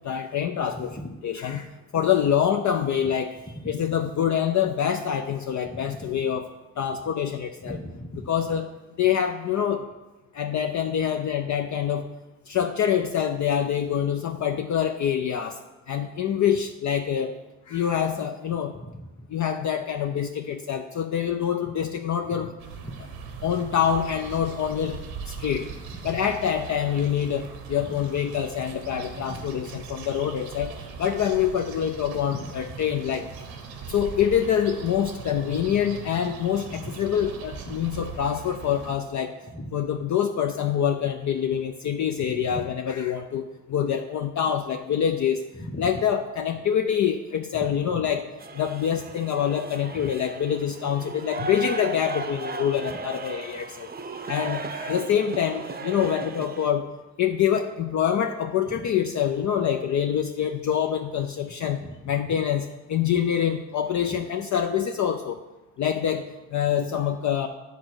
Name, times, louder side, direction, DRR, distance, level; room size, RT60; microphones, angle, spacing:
voice 1, 0.0-1.0 1.2-1.7 1.9-3.4 3.6-6.5 6.8-7.8 8.3-8.7 9.0-9.8 10.3-12.1 12.5-15.6 15.9-17.3 17.7-18.7 19.3-22.5 23.4-25.0 25.3-25.7 26.0-30.7 31.0-33.3 33.9-39.3 39.7-45.4 45.8-48.2 48.5-53.9 54.3-56.9 57.2-65.4 65.8-66.2 66.5-67.5, left 9 dB, 50° left, 6 dB, 0.6 m, -25 dB
voice 2, 7.6-8.3 18.7-19.3 22.3-22.5 22.8-23.0 27.9-28.0 29.3-29.4 32.3-32.4 36.8-36.9 37.7-37.8 39.5-39.7 42.3-42.6 45.6-45.8 47.9-48.1 49.9-50.0 61.8-61.9, equal, 15° left, 6 dB, 1.1 m, -38 dB
sound 1, 22.6-39.0, right 5 dB, 85° right, 1.1 m, -40 dB
sound 2, 48.4-56.7, right 4 dB, 25° right, 0.6 m, -36 dB
8.3 x 4.0 x 6.3 m, 1.1 s
supercardioid pair, 55°, 37 cm